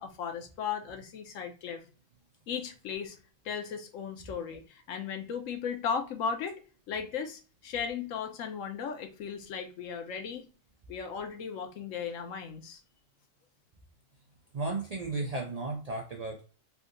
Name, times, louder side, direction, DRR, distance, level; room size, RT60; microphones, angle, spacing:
voice 1, 0.0-1.8 2.5-3.2 3.4-6.6 6.9-10.5 10.9-12.8, left 6 dB, 75° left, 1.1 m, -36 dB
voice 2, 14.5-16.4, right 3 dB, 80° right, 0.3 m, -34 dB
3.4 x 2.7 x 2.5 m
omnidirectional pair, 1.4 m